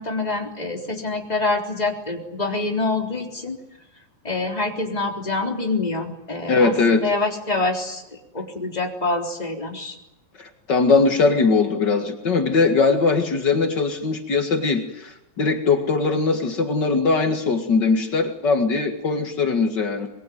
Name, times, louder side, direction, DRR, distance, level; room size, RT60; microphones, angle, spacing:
voice 1, 0.0-3.6 4.2-10.0, left 3 dB, 10° left, 2 dB, 2.9 m, -26 dB
voice 2, 6.5-7.1 10.4-20.1, left 4 dB, 75° left, 5 dB, 0.9 m, -20 dB
25.5 x 22.0 x 9.4 m, 0.90 s
omnidirectional pair, 5.2 m